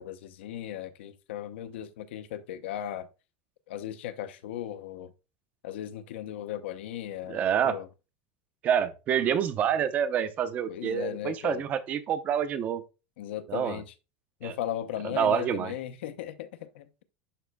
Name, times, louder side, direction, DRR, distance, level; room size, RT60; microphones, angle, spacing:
voice 1, 0.0-3.1 3.7-5.1 5.6-7.9 10.7-11.6 13.2-13.9 14.4-17.0, left 11 dB, 85° left, 0.8 m, -37 dB
voice 2, 7.3-7.8 8.6-12.8 13.5-13.8 14.4-14.5 15.1-15.7, right 8 dB, 25° right, 0.6 m, -27 dB
11.0 x 4.1 x 2.2 m
supercardioid pair, 170°, 6 cm